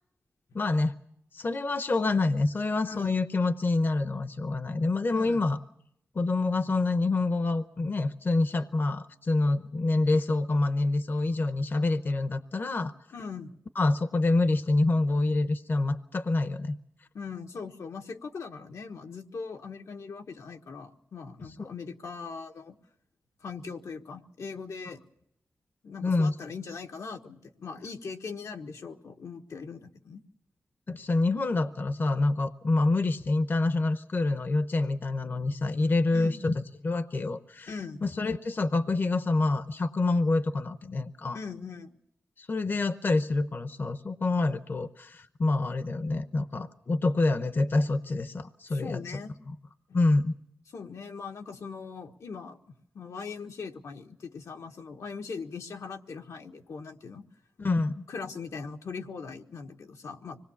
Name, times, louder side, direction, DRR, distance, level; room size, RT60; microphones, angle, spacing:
voice 1, 0.5-1.0 1.3-5.6 6.1-12.9 13.8-16.8 21.6-21.7 26.0-26.3 30.9-37.7 38.0-41.4 42.4-49.0 49.5-49.6 49.9-50.3 57.6-58.0, left 2 dB, 40° left, 10 dB, 0.8 m, -27 dB
voice 2, 5.1-5.4 13.1-13.6 17.1-22.7 23.4-25.0 25.8-30.2 36.1-36.4 37.7-38.0 41.3-41.9 48.7-49.3 49.9-50.0 50.7-52.6 52.9-57.2 58.1-60.4, left 5 dB, 85° left, 4 dB, 1.4 m, -40 dB
25.5 x 19.5 x 7.1 m, 0.74 s
wide cardioid pair, 150°, 5 cm